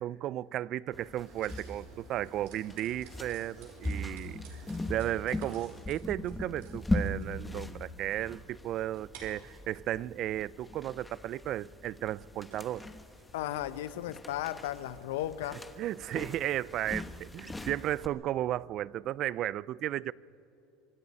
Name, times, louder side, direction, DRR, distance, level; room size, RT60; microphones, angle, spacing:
voice 1, 0.0-4.4 4.9-12.9 15.8-20.1, right 13 dB, 50° right, 0.4 m, -34 dB
sound 1, 0.9-18.1, left 1 dB, 10° left, 1.1 m, -40 dB
sound 2, 1.1-18.1, right 4 dB, 80° right, 4.8 m, -56 dB
voice 2, 13.3-15.6, left 13 dB, 85° left, 0.8 m, -35 dB
25.5 x 11.0 x 9.8 m
supercardioid pair, 110°, 0 cm